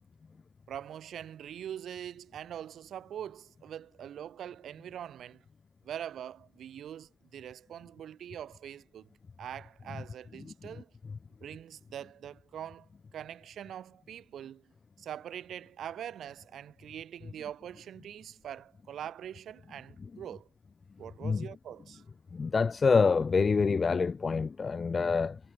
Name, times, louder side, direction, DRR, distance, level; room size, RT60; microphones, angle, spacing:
voice 1, 0.7-5.4 5.8-9.1 9.4-10.9 11.4-12.9 13.1-14.7 15.0-20.5 21.0-22.0, right 10 dB, 65° right, 3.5 m, -43 dB
voice 2, 22.3-25.4, left 5 dB, 35° left, 1.0 m, -26 dB
cardioid pair, 90°, 0 cm